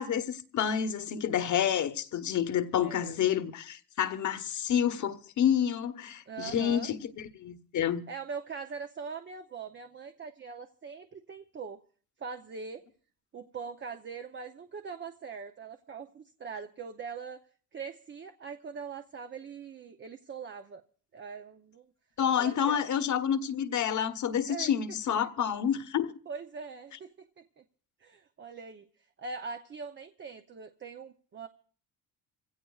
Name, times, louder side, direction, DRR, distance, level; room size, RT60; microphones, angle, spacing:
voice 1, 0.0-8.0 22.2-26.1, left 9 dB, 55° left, 1.1 m, -29 dB
voice 2, 2.8-3.2 6.3-6.9 8.1-11.8 12.2-12.8 13.3-17.4 17.7-20.8 21.1-21.9 22.4-22.8 24.5-24.7 26.3-27.6 28.0-28.9 29.2-31.5, right 5 dB, 30° right, 0.6 m, -42 dB
25.5 x 16.5 x 2.4 m
cardioid pair, 105°, 37 cm